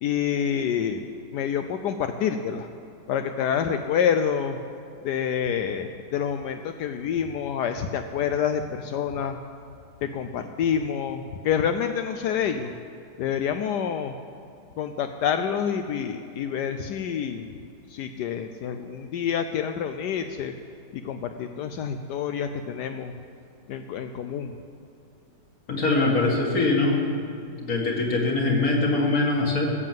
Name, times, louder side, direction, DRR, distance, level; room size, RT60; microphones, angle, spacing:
voice 1, 0.0-1.0 1.3-2.7 3.1-4.6 5.0-9.4 10.0-12.7 13.2-14.1 14.8-17.5 17.9-20.5 20.9-23.1 23.7-24.5, left 8 dB, 75° left, 7 dB, 1.2 m, -27 dB
voice 2, 25.7-27.0 27.6-29.7, left 2 dB, 55° left, -1 dB, 2.3 m, -23 dB
16.0 x 7.4 x 7.6 m, 2.5 s
omnidirectional pair, 1.9 m